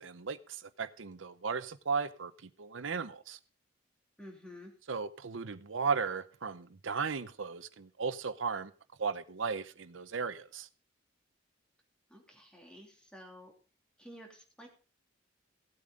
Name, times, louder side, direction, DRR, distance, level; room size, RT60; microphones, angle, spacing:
voice 1, 0.0-3.4 4.9-8.7 9.0-10.7, right 5 dB, 85° right, 0.8 m, -36 dB
voice 2, 4.2-4.7 12.1-13.5 14.0-14.7, equal, 5° left, 2.8 m, -51 dB
16.0 x 8.6 x 3.8 m
head